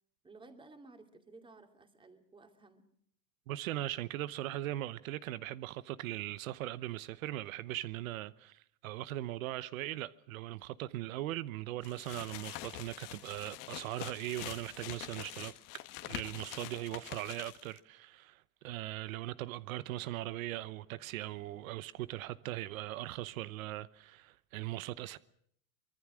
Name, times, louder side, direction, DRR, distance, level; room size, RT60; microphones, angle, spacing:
voice 1, 0.2-2.9, right 3 dB, 10° right, 2.6 m, -56 dB
voice 2, 3.5-25.2, right 15 dB, 85° right, 1.0 m, -40 dB
sound 1, 11.8-17.8, left 17 dB, 55° left, 1.7 m, -45 dB
24.5 x 21.5 x 6.3 m
supercardioid pair, 140°, 40 cm